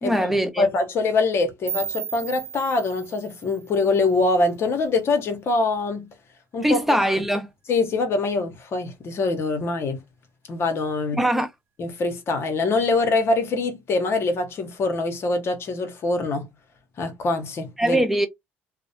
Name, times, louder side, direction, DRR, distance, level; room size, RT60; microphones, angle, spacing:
voice 1, 0.0-0.7 6.6-7.5 11.1-11.5 17.8-18.3, right 1 dB, 5° right, 0.6 m, -21 dB
voice 2, 0.6-6.1 6.5-6.8 7.7-10.0 10.5-11.2 11.8-16.5 17.0-18.0, left 3 dB, 55° left, 0.8 m, -24 dB
sound 1, 1.7-4.6, right 7 dB, 45° right, 0.4 m, -35 dB
2.3 x 2.1 x 2.7 m
supercardioid pair, 65°, 5 cm